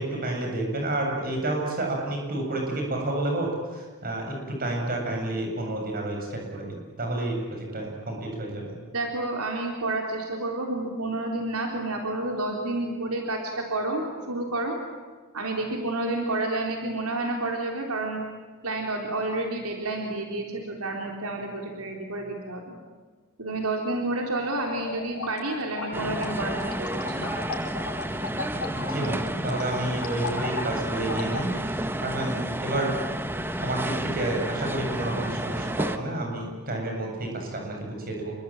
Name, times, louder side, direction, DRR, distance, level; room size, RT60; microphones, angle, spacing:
voice 1, 0.0-3.5 3.7-8.7 28.8-31.5 32.0-32.9 33.6-38.3, right 1 dB, 40° right, 1 dB, 7.9 m, -30 dB
voice 2, 8.9-14.8 15.3-18.2 18.6-22.7 23.4-27.2, right 2 dB, 80° right, 1 dB, 3.9 m, -30 dB
sound 1, 24.6-31.6, left 3 dB, 75° left, 7.7 m, -36 dB
sound 2, 25.9-36.0, right 1 dB, 10° right, 1.1 m, -31 dB
28.0 x 22.5 x 9.1 m, 1.4 s
head